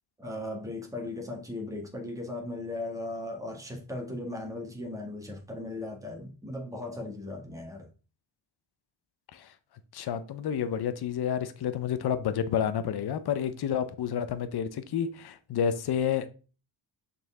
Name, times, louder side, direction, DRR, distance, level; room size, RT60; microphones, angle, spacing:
voice 1, 0.2-7.9, left 2 dB, 5° right, 1.4 m, -37 dB
voice 2, 9.9-16.3, left 8 dB, 50° left, 0.8 m, -30 dB
6.5 x 4.3 x 3.6 m
cardioid pair, 125°, 49 cm